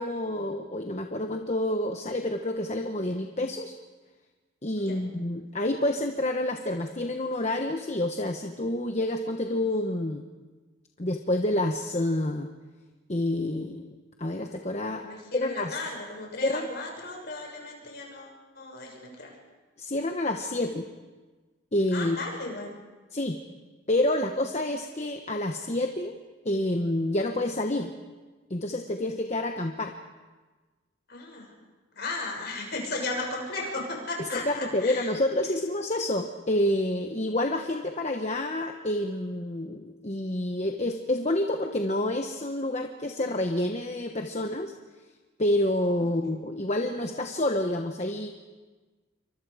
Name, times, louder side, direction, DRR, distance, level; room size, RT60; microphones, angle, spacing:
voice 1, 0.0-3.7 4.6-10.2 11.0-12.5 13.1-13.9 14.2-15.0 15.3-15.8 16.4-16.8 19.8-20.9 21.7-22.2 23.1-23.4 23.9-26.2 26.4-27.9 28.5-29.9 34.3-44.7 45.4-48.3, left 1 dB, 35° left, 4 dB, 1.1 m, -28 dB
voice 2, 14.9-19.3 21.9-22.8 31.1-31.5 31.9-35.1, left 2 dB, 55° left, 0 dB, 6.6 m, -35 dB
27.5 x 24.5 x 5.0 m, 1.3 s
head